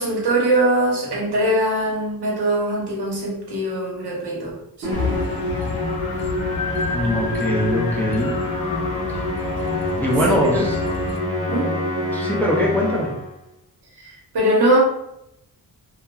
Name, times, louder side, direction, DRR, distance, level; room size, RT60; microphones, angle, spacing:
voice 1, 0.0-4.5 10.3-10.7 11.5-11.7 14.3-14.8, right 1 dB, 80° right, -3 dB, 1.0 m, -21 dB
Musical instrument, 4.8-13.3, left 1 dB, 35° right, 0.9 m, -26 dB
sound 1, 4.9-11.2, left 4 dB, 65° left, 0.5 m, -30 dB
voice 2, 6.9-8.3 10.0-10.8 12.1-13.1, equal, 5° left, -3 dB, 0.3 m, -22 dB
2.8 x 2.2 x 2.3 m, 0.80 s
wide cardioid pair, 150°, 39 cm